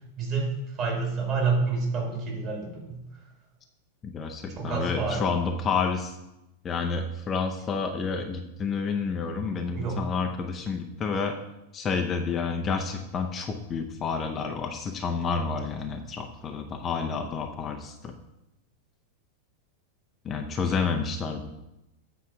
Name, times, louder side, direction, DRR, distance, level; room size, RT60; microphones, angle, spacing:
voice 1, 0.2-0.5 0.8-3.0 4.6-5.3 9.7-10.0, right 4 dB, 35° right, -1 dB, 2.7 m, -28 dB
voice 2, 4.0-6.2 6.6-11.4 11.7-18.1 20.2-21.5, left 5 dB, 25° left, 4 dB, 0.6 m, -29 dB
8.4 x 4.6 x 5.6 m, 0.92 s
figure-of-eight pair, 90°, 0 cm